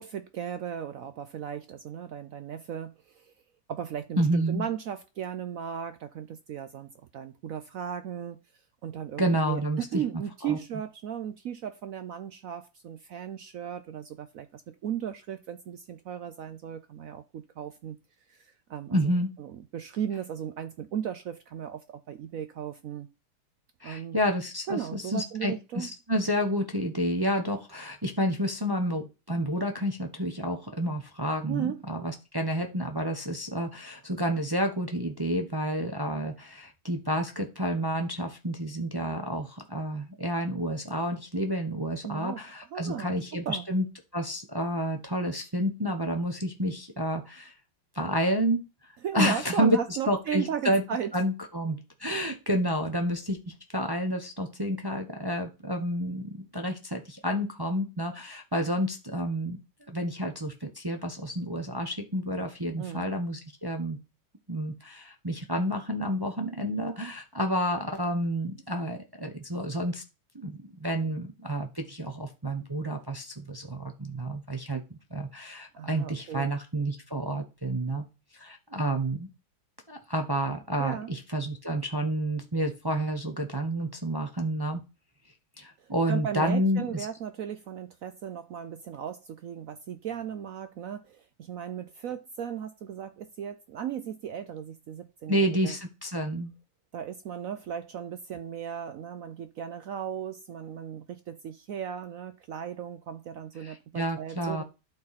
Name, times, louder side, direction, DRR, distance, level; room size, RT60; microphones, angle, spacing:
voice 1, 0.0-3.3 3.7-8.4 8.8-18.0 18.3-19.0 19.4-23.1 23.8-24.2 24.7-25.9 31.5-31.8 42.0-42.4 42.7-43.6 49.0-51.1 62.8-63.1 75.7-76.5 80.8-81.1 86.1-95.8 96.9-104.6, right 9 dB, 75° right, 0.7 m, -36 dB
voice 2, 4.2-4.7 9.2-10.0 10.4-10.6 18.9-19.3 23.8-43.8 44.1-47.5 47.9-48.6 49.1-49.8 50.1-50.8 51.1-59.6 59.9-64.0 64.5-70.0 70.3-78.0 78.4-79.3 79.9-84.8 85.6-87.1 95.3-96.5 103.6-104.6, equal, 30° right, 0.4 m, -30 dB
11.5 x 4.5 x 4.1 m
omnidirectional pair, 2.1 m